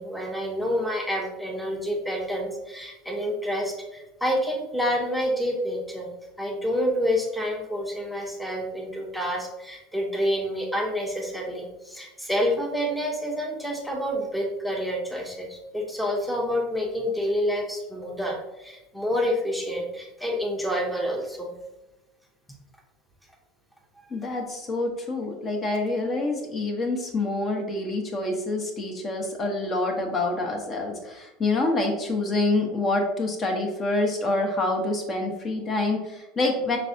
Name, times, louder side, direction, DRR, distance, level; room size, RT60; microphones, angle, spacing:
voice 1, 0.0-6.1 6.4-21.5, equal, ahead, 0 dB, 0.8 m, -28 dB
voice 2, 24.1-36.8, left 2 dB, 35° left, 2 dB, 0.9 m, -26 dB
5.2 x 3.3 x 2.7 m, 1.0 s
figure-of-eight pair, 75°, 0 cm